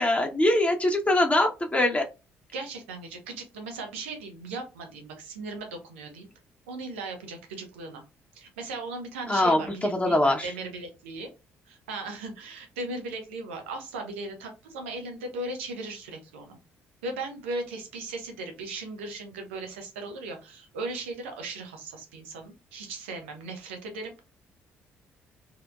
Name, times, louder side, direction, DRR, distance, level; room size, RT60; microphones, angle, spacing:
voice 1, 0.0-2.0 9.3-10.5, left 1 dB, 20° left, 3 dB, 0.6 m, -23 dB
voice 2, 2.5-6.3 6.7-8.0 8.3-11.3 11.7-16.6 17.0-24.2, right 2 dB, 80° right, 4 dB, 0.6 m, -37 dB
2.8 x 2.1 x 2.3 m, 0.27 s
figure-of-eight pair, 45°, 7 cm